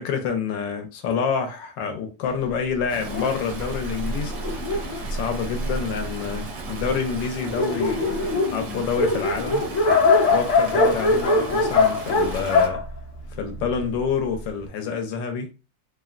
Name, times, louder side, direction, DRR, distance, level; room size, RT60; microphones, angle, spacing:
voice 1, 0.0-4.3 5.1-8.1 8.5-9.6 10.3-12.8 13.4-15.5, left 6 dB, 80° left, 1.3 m, -27 dB
Stream, 2.9-12.7, right 3 dB, 65° right, 0.9 m, -37 dB
Dog, 3.1-6.1 6.8-6.9 7.2-7.3 7.5-13.9, left 3 dB, 60° left, 0.9 m, -22 dB
3.4 x 2.1 x 2.4 m
omnidirectional pair, 2.0 m